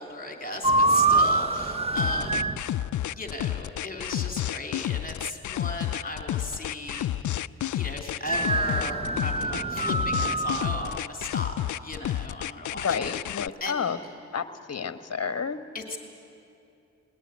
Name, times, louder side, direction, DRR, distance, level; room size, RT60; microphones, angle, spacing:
voice 1, 0.0-2.6 3.1-7.3 7.7-13.2 13.6-14.0 15.7-16.0, left 2 dB, 25° left, 3 dB, 3.1 m, -36 dB
sound 1, 0.6-2.6 8.3-11.0, right 2 dB, 20° right, 0.8 m, -25 dB
sound 2, 2.0-13.5, left 12 dB, 65° left, 0.5 m, -30 dB
voice 2, 12.8-14.0 14.3-15.7, left 6 dB, 50° left, 11 dB, 1.2 m, -30 dB
20.0 x 19.5 x 9.7 m, 2.7 s
cardioid pair, 55°, 32 cm